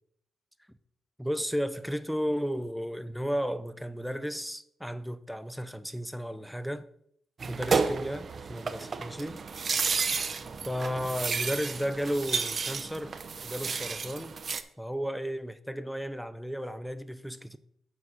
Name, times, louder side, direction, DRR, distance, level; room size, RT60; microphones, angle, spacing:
voice 1, 1.2-6.9 7.5-9.4 10.6-13.2 13.4-14.3 14.8-17.6, equal, ahead, 0.5 m, -34 dB
sound 1, 7.4-14.6, right 5 dB, 45° right, 0.6 m, -32 dB
7.3 x 4.1 x 6.1 m
cardioid pair, 80°, 0 cm